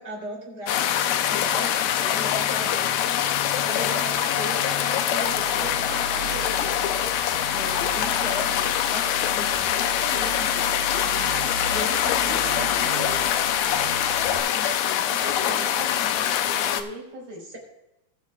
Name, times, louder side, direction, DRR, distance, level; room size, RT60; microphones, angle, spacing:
voice 1, 0.0-3.3 3.7-12.9 14.4-16.2 17.5-17.6, equal, 30° right, -1 dB, 3.8 m, -38 dB
sound 1, 0.7-16.8, left 10 dB, 75° left, 2.2 m, -24 dB
sound 2, 5.0-14.4, right 4 dB, 90° right, 4.2 m, -37 dB
voice 2, 11.8-13.3 15.1-17.4, right 2 dB, 70° right, -4 dB, 5.4 m, -40 dB
20.5 x 8.9 x 2.4 m, 0.93 s
omnidirectional pair, 4.2 m